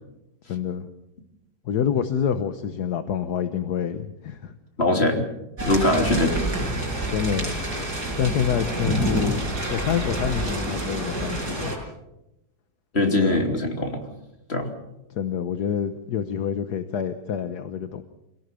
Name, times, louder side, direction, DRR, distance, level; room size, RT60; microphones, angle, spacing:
voice 1, 0.5-0.9 1.6-4.5 7.1-7.6 8.2-9.4 9.7-11.7 13.2-13.4 15.1-18.0, left 8 dB, 65° left, 9 dB, 1.5 m, -27 dB
voice 2, 4.8-5.2 5.6-6.3 12.9-14.0 14.5-14.7, left 1 dB, 35° left, 3 dB, 3.4 m, -21 dB
sound 1, 5.6-11.8, right 1 dB, 55° right, 6.1 m, -27 dB
26.0 x 18.0 x 7.0 m, 0.91 s
omnidirectional pair, 1.9 m